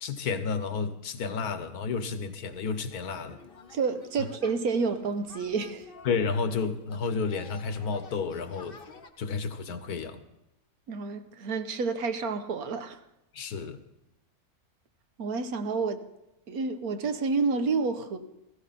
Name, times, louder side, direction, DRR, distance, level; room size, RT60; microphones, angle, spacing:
voice 1, 0.0-3.4 6.0-8.8 9.2-10.2 13.3-13.8, left 5 dB, 75° left, 1.5 m, -31 dB
sound 1, 2.5-9.1, left 5 dB, 40° left, 1.1 m, -51 dB
voice 2, 3.7-5.9 10.9-13.0 15.2-16.0 16.5-18.2, right 4 dB, 75° right, 1.4 m, -29 dB
16.5 x 15.5 x 4.2 m
omnidirectional pair, 1.6 m